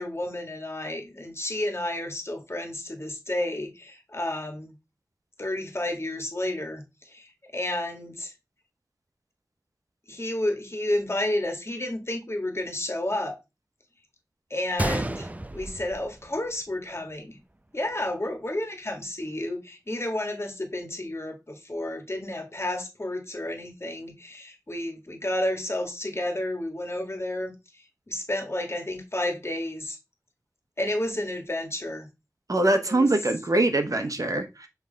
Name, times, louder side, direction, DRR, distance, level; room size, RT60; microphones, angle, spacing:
voice 1, 0.0-4.8 5.4-8.3 10.1-13.4 14.5-17.4 17.7-30.0 30.8-32.1 32.9-33.1 33.9-34.1, left 1 dB, 40° left, 1.7 m, -31 dB
Gunshot gunfire, 14.8-16.8 17.1-17.2 17.9-18.1, right 1 dB, 25° right, 0.5 m, -31 dB
voice 2, 32.5-34.7, right 2 dB, 60° right, 1.0 m, -23 dB
7.2 x 3.3 x 3.9 m
wide cardioid pair, 45°, 7 cm